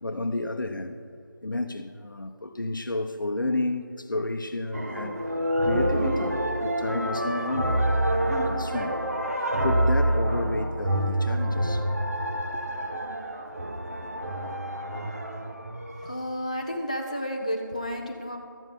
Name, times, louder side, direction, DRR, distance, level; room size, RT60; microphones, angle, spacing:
voice 1, 0.0-1.0 1.4-7.8 8.2-9.0 9.4-12.1 12.5-12.6, left 2 dB, 70° left, 0.8 m, -31 dB
sound 1, 4.7-16.1, right 1 dB, 50° right, 1.1 m, -27 dB
voice 2, 16.0-18.4, equal, 20° left, 0.6 m, -31 dB
12.5 x 8.4 x 5.2 m
figure-of-eight pair, 180°, 11 cm